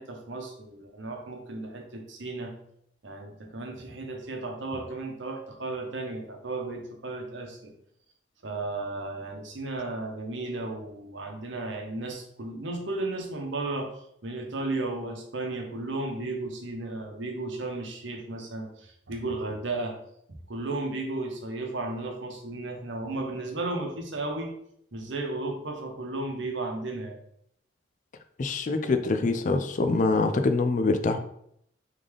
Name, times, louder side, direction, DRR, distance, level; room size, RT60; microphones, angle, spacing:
voice 1, 0.0-2.5 3.0-7.7 8.4-20.0 20.3-24.5 24.9-27.2, right 2 dB, 65° right, 2 dB, 0.9 m, -34 dB
voice 2, 28.4-31.2, left 3 dB, 40° left, 7 dB, 0.4 m, -24 dB
3.7 x 3.6 x 3.4 m, 0.72 s
head